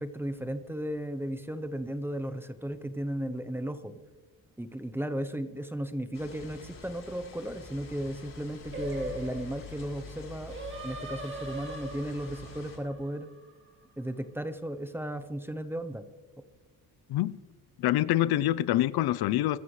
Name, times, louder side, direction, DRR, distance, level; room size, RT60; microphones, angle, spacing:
voice 1, 0.0-4.0 4.6-10.5 10.8-13.3 14.0-16.0, right 1 dB, 5° right, 10 dB, 0.8 m, -35 dB
sound 1, 6.1-12.8, left 5 dB, 45° left, 5.6 m, -46 dB
Singing, 8.7-14.0, right 2 dB, 30° right, 2.5 m, -42 dB
voice 2, 17.8-19.6, left 14 dB, 80° left, 18 dB, 0.6 m, -26 dB
23.0 x 11.5 x 3.2 m, 1.2 s
cardioid pair, 120°, 37 cm